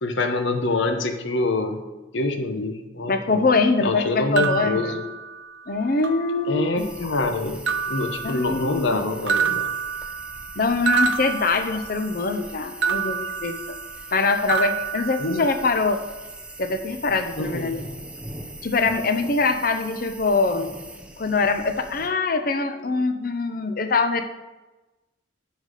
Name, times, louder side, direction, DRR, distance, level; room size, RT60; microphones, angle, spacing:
voice 1, 0.0-1.8 2.1-3.5 3.8-5.0 6.5-7.6 7.9-9.7 15.2-15.4 17.4-17.7, left 2 dB, 75° left, 6 dB, 0.9 m, -25 dB
voice 2, 3.1-5.0 5.7-6.9 8.2-9.0 10.6-13.5 14.1-16.0 16.6-17.8 18.6-20.7 21.2-24.2, left 3 dB, 50° left, 7 dB, 0.6 m, -23 dB
sound 1, 4.4-5.6 6.0-6.8 7.7-8.9 9.3-12.2 12.8-14.2 14.5-15.8, right 6 dB, 70° right, 0.6 m, -28 dB
sound 2, 6.8-22.1, right 1 dB, 5° right, 0.7 m, -41 dB
10.0 x 4.1 x 6.5 m, 1.1 s
head